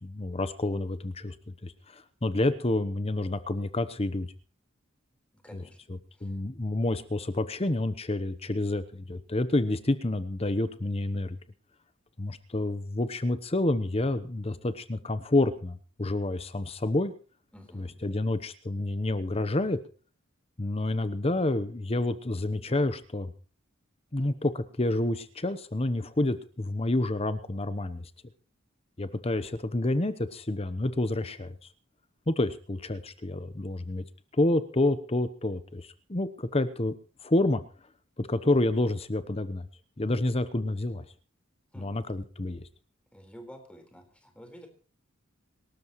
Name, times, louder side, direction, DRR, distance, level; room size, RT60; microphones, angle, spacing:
voice 1, 0.0-4.3 5.5-5.6 6.2-11.4 12.2-17.1 17.7-19.8 20.6-23.3 24.1-28.1 29.0-31.6 32.3-34.0 34.3-36.9 37.2-37.6 38.2-39.7 40.0-41.0 41.8-42.6, left 2 dB, 30° left, 12 dB, 1.0 m, -29 dB
voice 2, 5.4-5.8 6.1-6.3 17.5-18.0 41.7-41.9 43.1-44.7, equal, 5° left, 4 dB, 4.2 m, -49 dB
26.5 x 13.0 x 3.1 m, 0.39 s
head